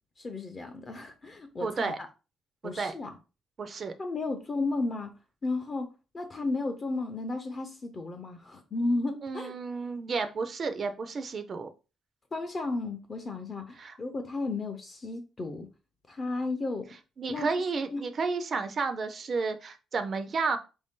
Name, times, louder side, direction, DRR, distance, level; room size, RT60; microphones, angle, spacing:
voice 1, 0.2-2.1 2.6-3.2 4.0-5.1 5.4-5.9 6.1-9.5 12.3-15.7 16.1-16.9 17.3-18.1, left 3 dB, 25° left, 0.5 m, -33 dB
voice 2, 1.6-2.0 2.6-2.9 3.6-3.9 9.2-11.7 13.8-14.0 17.2-20.6, right 4 dB, 35° right, 0.4 m, -31 dB
4.5 x 2.6 x 3.6 m
cardioid pair, 170°, 0 cm